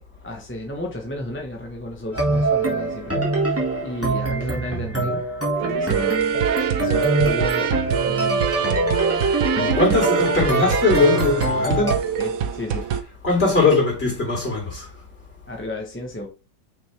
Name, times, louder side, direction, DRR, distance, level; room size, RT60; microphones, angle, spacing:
voice 1, 0.0-3.2 3.8-5.2 5.7-6.3 6.8-7.7 8.0-8.5 9.2-9.3 12.2-12.9 15.5-16.3, left 1 dB, 10° left, 0.9 m, -33 dB
sound 1, 2.1-11.9, right 2 dB, 10° right, 1.8 m, -24 dB
sound 2, 5.6-13.0, right 8 dB, 60° right, 1.0 m, -24 dB
voice 2, 9.0-9.4 9.8-12.0 13.2-14.9, left 3 dB, 35° left, 3.6 m, -20 dB
6.3 x 5.3 x 3.4 m
omnidirectional pair, 1.9 m